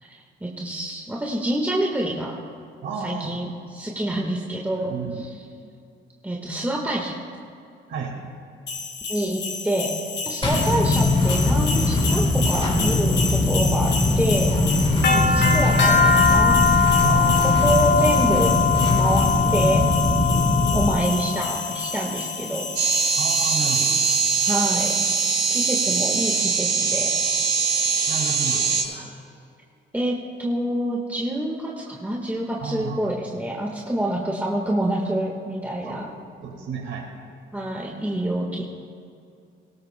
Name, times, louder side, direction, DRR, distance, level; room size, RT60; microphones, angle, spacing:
voice 1, 0.0-2.4 3.0-3.5 3.7-5.3 6.2-7.2 9.1-9.9 10.2-14.5 15.1-16.7 17.6-18.6 18.9-19.8 20.7-22.7 24.5-24.9 25.5-27.3 29.9-36.1 37.5-38.6, right 1 dB, 10° right, -2 dB, 1.5 m, -26 dB
voice 2, 2.8-3.4 4.7-5.3 7.9-8.1 15.0-15.3 17.0-17.6 23.2-24.0 28.1-29.1 32.6-33.1 35.8-36.1 36.4-37.1, right 5 dB, 80° right, 1 dB, 2.0 m, -32 dB
sound 1, 8.7-26.4, left 5 dB, 65° left, 1.8 m, -25 dB
sound 2, 10.4-21.0, left 2 dB, 25° left, 2.4 m, -21 dB
sound 3, 22.8-28.8, right 5 dB, 60° right, 3.2 m, -22 dB
19.0 x 17.5 x 2.2 m, 2.5 s
cardioid pair, 90°, 20 cm